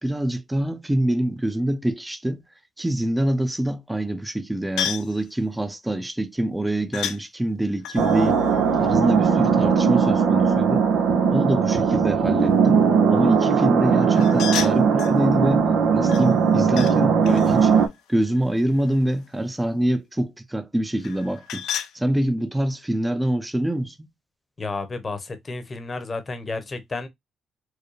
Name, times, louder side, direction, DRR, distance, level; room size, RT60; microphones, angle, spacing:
voice 1, 0.0-2.4 2.8-8.4 8.8-10.9 11.3-12.8 13.1-15.7 15.9-17.7 18.1-21.6 21.9-24.1, right 1 dB, 10° right, 0.6 m, -25 dB
sound 1, 4.8-5.2 6.9-7.2 7.8-9.6 14.1-15.2 16.1-17.0 17.2-19.1 21.0-21.9, left 9 dB, 85° left, 0.5 m, -33 dB
sound 2, 8.0-17.9, right 6 dB, 90° right, 0.8 m, -19 dB
voice 2, 24.6-27.1, left 3 dB, 30° left, 0.9 m, -31 dB
4.7 x 2.1 x 3.1 m
cardioid pair, 90°, 0 cm